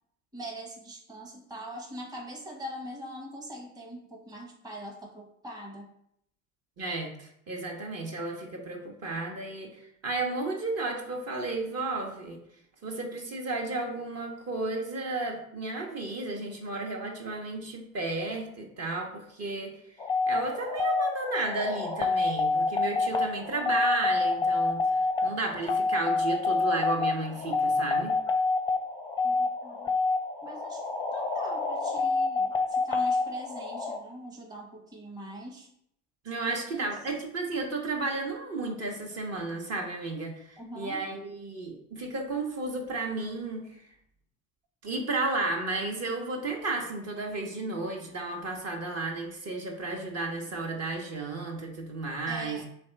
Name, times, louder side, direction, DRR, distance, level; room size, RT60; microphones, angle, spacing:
voice 1, 0.3-5.9 29.2-29.9 30.4-35.7 36.6-36.9 40.6-41.0 52.3-52.7, equal, 10° right, 0 dB, 0.9 m, -42 dB
voice 2, 6.8-12.4 12.8-19.8 20.3-28.1 36.2-43.6 44.8-52.6, right 2 dB, 40° right, 1 dB, 1.0 m, -33 dB
sound 1, 20.0-34.0, left 3 dB, 10° left, 0.5 m, -27 dB
3.4 x 3.3 x 4.4 m, 0.71 s
hypercardioid pair, 85°, 41 cm